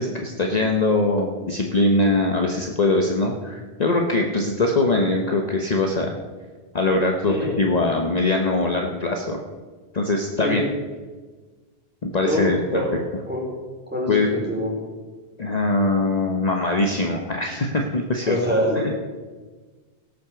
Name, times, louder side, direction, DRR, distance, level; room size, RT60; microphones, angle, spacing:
voice 1, 0.0-6.1 6.7-9.4 9.9-10.6 12.0-12.8 14.1-14.3 15.4-18.4 18.8-18.9, left 2 dB, 40° left, 2 dB, 1.1 m, -22 dB
voice 2, 7.3-7.6 10.4-10.6 12.2-12.9 13.3-13.4 13.9-14.7 18.2-18.8, equal, 10° right, -4 dB, 4.5 m, -25 dB
17.0 x 6.6 x 7.0 m, 1.4 s
omnidirectional pair, 1.1 m